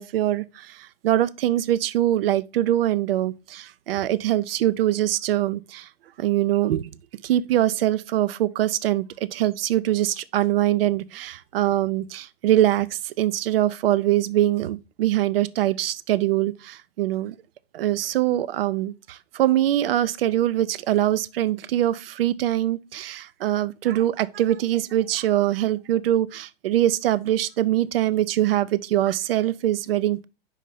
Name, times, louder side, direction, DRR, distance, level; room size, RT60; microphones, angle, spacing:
voice 1, 0.0-5.9 6.2-6.9 7.2-17.3 17.7-30.3, right 13 dB, 70° right, 0.5 m, -23 dB
5.4 x 4.9 x 4.1 m
hypercardioid pair, 105°, 30 cm